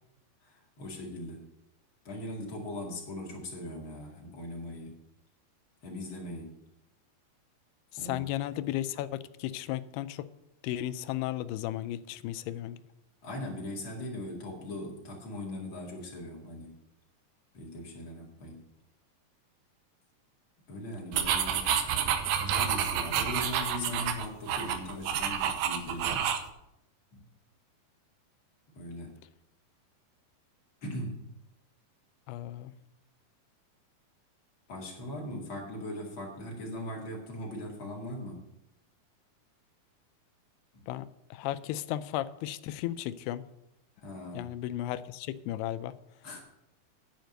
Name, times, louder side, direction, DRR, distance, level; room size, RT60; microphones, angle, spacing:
voice 1, 0.4-1.4 2.0-4.9 5.8-6.6 8.0-8.2 13.2-16.7 17.5-18.6 20.7-21.7 22.4-26.3 27.1-27.2 28.7-29.1 30.8-31.2 34.7-38.5 40.7-40.8 44.0-44.5 46.2-46.4, left 1 dB, 40° left, -1 dB, 2.2 m, -39 dB
voice 2, 7.9-10.3 10.6-12.8 32.3-32.7 40.9-43.4 44.3-45.9, left 13 dB, 90° left, 14 dB, 2.6 m, -35 dB
sound 1, 21.1-26.5, right 9 dB, 90° right, 2.8 m, -29 dB
10.5 x 5.1 x 7.8 m, 0.84 s
omnidirectional pair, 4.5 m